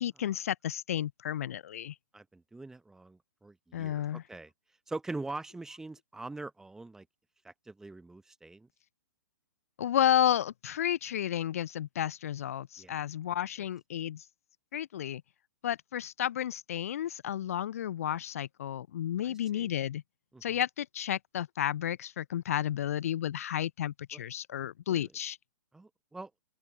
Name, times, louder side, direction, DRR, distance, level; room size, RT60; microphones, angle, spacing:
voice 1, 0.0-1.9 3.7-4.2 9.8-14.3 14.7-15.2 15.6-20.0 20.4-25.4, left 10 dB, 55° left, 0.4 m, -32 dB
voice 2, 2.1-4.5 4.9-7.0 7.4-8.7 12.8-13.0 19.2-19.7 20.3-20.6 24.1-24.2 24.9-25.1 25.7-26.3, right 2 dB, 5° right, 1.0 m, -43 dB
open air
figure-of-eight pair, 120°, 10 cm